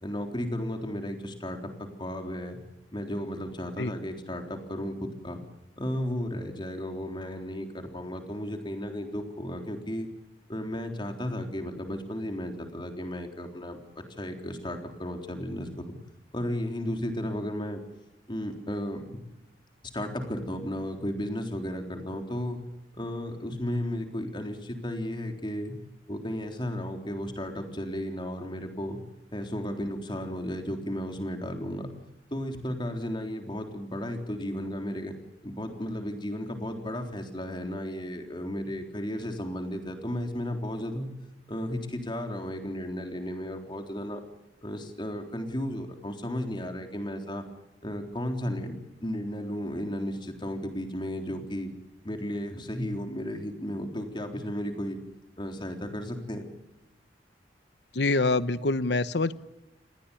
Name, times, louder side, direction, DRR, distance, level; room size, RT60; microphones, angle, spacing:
voice 1, 0.0-1.7 2.0-2.6 2.9-5.4 5.8-10.1 10.5-16.0 16.3-17.8 18.3-19.2 19.9-22.6 22.9-25.8 26.1-29.0 29.3-31.9 32.3-35.1 35.4-41.1 41.5-44.2 44.6-47.4 47.8-51.7 52.0-55.0 55.4-56.4, equal, 25° left, 4 dB, 3.8 m, -34 dB
voice 2, 57.9-59.3, left 3 dB, 70° left, 15 dB, 1.0 m, -25 dB
28.0 x 20.5 x 7.1 m, 0.90 s
head